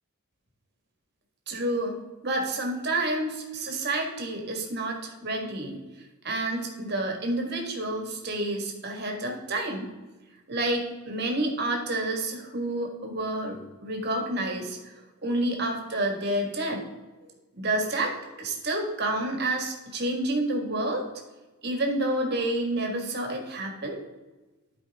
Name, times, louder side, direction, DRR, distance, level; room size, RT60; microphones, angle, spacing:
voice 1, 1.5-5.8 6.2-9.9 10.5-16.8 17.6-21.1 21.6-24.0, right 1 dB, 50° right, 2 dB, 1.7 m, -29 dB
12.0 x 4.9 x 3.6 m, 1.2 s
head